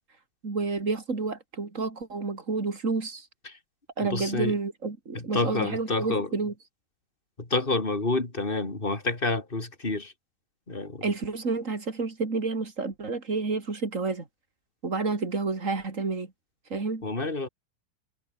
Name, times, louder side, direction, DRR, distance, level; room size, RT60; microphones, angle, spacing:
voice 1, 0.4-3.3 4.0-6.5 11.0-14.3 14.8-16.3 16.7-17.0, right 3 dB, 40° right, 3.6 m, -30 dB
voice 2, 4.0-4.6 5.1-6.3 7.4-10.1 10.7-11.1 17.0-17.5, left 3 dB, 25° left, 3.8 m, -28 dB
omnidirectional pair, 2.1 m